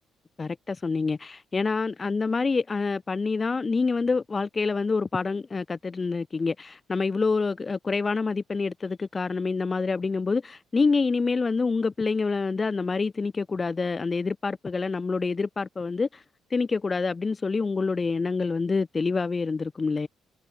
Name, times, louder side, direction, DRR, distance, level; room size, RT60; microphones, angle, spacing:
voice 1, 0.4-16.2 16.5-20.1, left 4 dB, 30° left, 3.0 m, -27 dB
cardioid pair, 90°, 0 cm